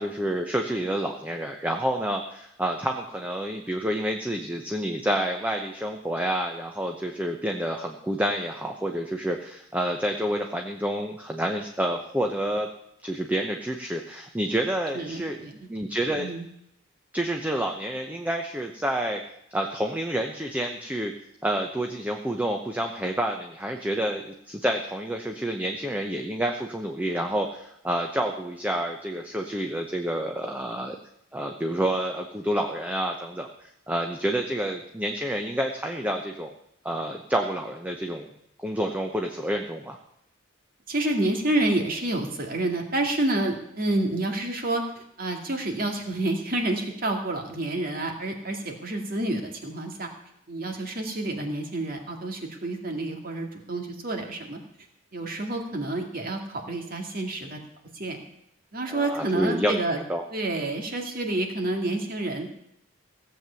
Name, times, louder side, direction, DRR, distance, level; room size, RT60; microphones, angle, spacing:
voice 1, 0.0-12.7 13.0-15.4 15.7-16.3 17.1-19.2 19.5-21.1 21.4-31.0 31.3-36.5 36.8-38.3 38.6-40.0 58.9-59.7 60.1-60.2, right 1 dB, 10° right, 3 dB, 0.8 m, -28 dB
voice 2, 14.9-15.5 16.2-16.5 40.9-50.1 50.5-54.6 55.1-57.6 57.9-58.2 58.7-60.0 60.3-62.5, right 2 dB, 45° right, 3 dB, 2.3 m, -29 dB
16.5 x 7.7 x 6.9 m, 0.77 s
head